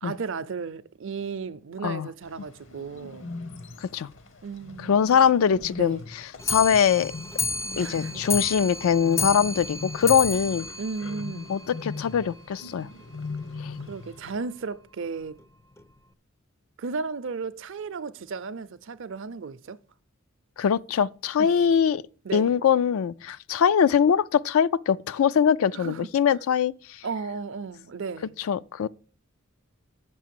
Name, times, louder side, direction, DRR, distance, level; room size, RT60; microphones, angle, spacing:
voice 1, 0.0-3.3 4.4-5.2 5.8-6.0 7.8-8.3 10.8-11.6 13.9-15.4 16.8-19.8 21.4-21.6 22.2-22.5 25.7-26.1 27.0-28.3, right 5 dB, 65° right, 0.5 m, -34 dB
Bird, 2.2-14.4, left 3 dB, 65° left, 0.9 m, -40 dB
voice 2, 4.8-7.1 7.8-10.7 11.5-12.9 13.6-13.7 20.6-22.0 22.3-26.7 28.5-28.9, left 7 dB, 85° left, 0.4 m, -22 dB
Clock, 6.4-11.9 12.2-12.3 12.6-12.7 13.0-13.1 13.4-13.5 14.2-14.3 15.0-15.1 15.8-15.9, left 4 dB, 15° left, 0.4 m, -32 dB
7.9 x 6.1 x 7.5 m
head